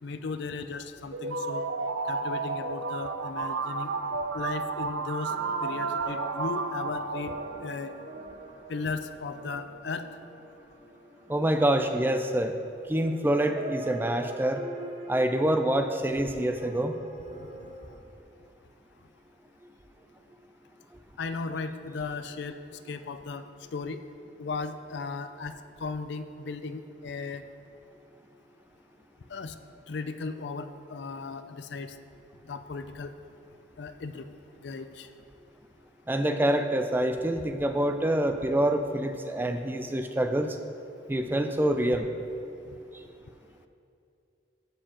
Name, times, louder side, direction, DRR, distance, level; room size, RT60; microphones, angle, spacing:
voice 1, 0.0-1.7 2.1-3.9 4.3-5.3 5.6-7.3 7.6-7.9 8.7-10.1 21.2-23.5 23.7-24.0 24.4-27.4 29.3-29.5 29.9-32.0 32.4-33.1 33.8-34.3 34.6-35.1, left 4 dB, 65° left, 10 dB, 0.4 m, -36 dB
sound 1, 1.1-7.9, right 4 dB, 85° right, 0.6 m, -32 dB
sound 2, 3.6-13.0 13.3-18.0, right 2 dB, 35° right, 1.0 m, -45 dB
voice 2, 11.3-12.5 12.9-14.6 15.1-16.9 36.1-40.6 41.1-42.1, right 1 dB, 10° right, 7 dB, 0.3 m, -26 dB
14.5 x 6.8 x 2.9 m, 2.7 s
head